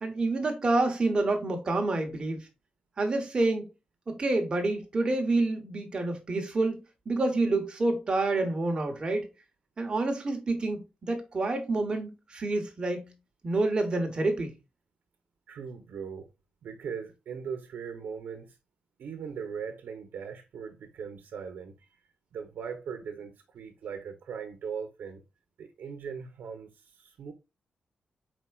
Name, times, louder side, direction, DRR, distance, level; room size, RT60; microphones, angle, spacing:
voice 1, 0.0-2.4 3.0-3.7 4.1-6.8 7.1-9.3 9.8-13.1 13.4-14.5, right 2 dB, 30° right, 0.9 m, -28 dB
voice 2, 15.5-16.3 16.6-18.5 19.0-21.7 22.3-25.2 25.6-27.3, right 6 dB, 85° right, 0.7 m, -39 dB
4.3 x 4.3 x 2.2 m
wide cardioid pair, 180°, 3 cm